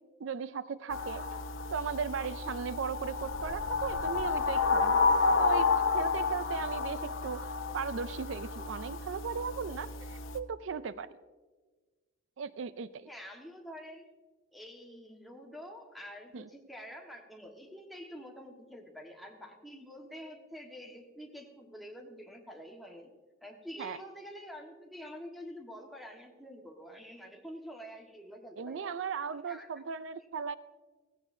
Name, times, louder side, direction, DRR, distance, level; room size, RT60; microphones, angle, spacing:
voice 1, 0.2-1.2 1.7-11.1 12.4-13.1 16.3-16.5 23.8-24.0 28.6-30.5, right 6 dB, 75° right, 14 dB, 0.4 m, -37 dB
sound 1, 0.9-10.4, left 4 dB, 85° left, 0.8 m, -31 dB
sound 2, 2.9-5.5, equal, 65° left, 3.2 m, -48 dB
voice 2, 13.1-14.1 14.5-28.9 29.4-29.7, equal, ahead, 1 dB, 1.4 m, -47 dB
16.5 x 16.0 x 2.7 m, 1.4 s
head